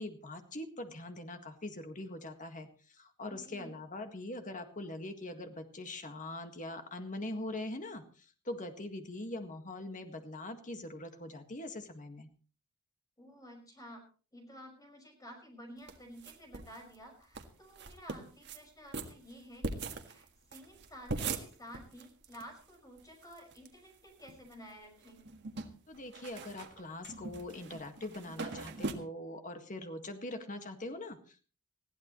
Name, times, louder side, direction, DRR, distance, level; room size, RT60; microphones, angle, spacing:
voice 1, 0.0-12.3 25.9-31.5, left 1 dB, 35° left, 6 dB, 1.8 m, -42 dB
voice 2, 3.3-3.7 13.2-14.0 14.3-25.2, equal, 15° left, 3 dB, 5.6 m, -52 dB
sound 1, 15.9-16.8 17.0-17.1 17.3-17.5 17.8-18.6 18.9-22.4 22.7-22.8 23.0-23.7 24.1-24.7 25.0-28.9, right 3 dB, 50° right, 1.7 m, -41 dB
21.0 x 15.0 x 3.1 m, 0.39 s
head